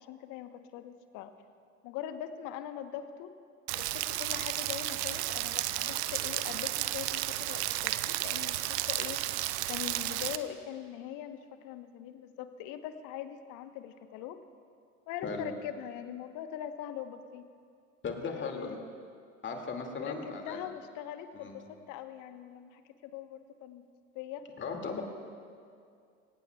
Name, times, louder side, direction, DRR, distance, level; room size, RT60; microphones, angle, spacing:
voice 1, 0.0-1.3 1.8-3.3 3.7-14.4 15.1-17.5 18.2-18.8 20.0-20.2 20.5-23.9 24.1-24.4, left 10 dB, 50° left, 9 dB, 1.1 m, -42 dB
Rain, 3.7-10.4, right 16 dB, 55° right, 0.7 m, -33 dB
voice 2, 18.0-18.8 19.4-20.6 21.3-21.5 24.6-25.0, left 4 dB, 30° left, 2 dB, 2.3 m, -37 dB
22.0 x 18.0 x 2.3 m, 2.3 s
figure-of-eight pair, 70°, 39 cm